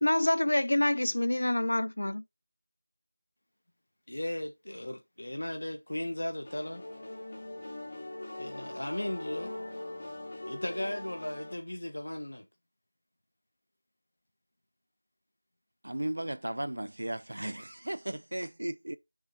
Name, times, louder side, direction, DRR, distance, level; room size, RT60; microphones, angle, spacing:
voice 1, 0.0-2.2, left 1 dB, 60° left, 0.5 m, -26 dB
voice 2, 4.1-6.8 8.4-9.7 10.5-12.5, left 1 dB, 75° left, 1.2 m, -36 dB
sound 1, 6.4-11.5, left 1 dB, 30° left, 2.5 m, -41 dB
voice 3, 15.8-19.0, right 1 dB, 70° right, 0.5 m, -35 dB
6.3 x 5.4 x 4.4 m
figure-of-eight pair, 175°, 0 cm